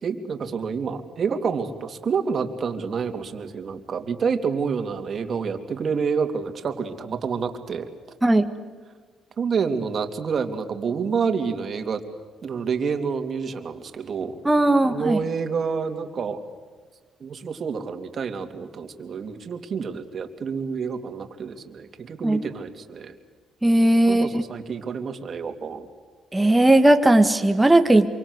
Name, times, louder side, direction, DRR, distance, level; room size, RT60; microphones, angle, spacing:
voice 1, 0.0-7.9 9.4-12.0 12.4-14.4 14.8-16.4 17.2-23.1 24.1-25.9, right 5 dB, 50° right, 6 dB, 3.1 m, -28 dB
voice 2, 14.4-15.2 22.2-22.4 23.6-24.4 26.3-28.1, right 1 dB, 10° right, 6 dB, 1.9 m, -17 dB
27.5 x 24.5 x 8.2 m, 1.5 s
cardioid pair, 90°, 0 cm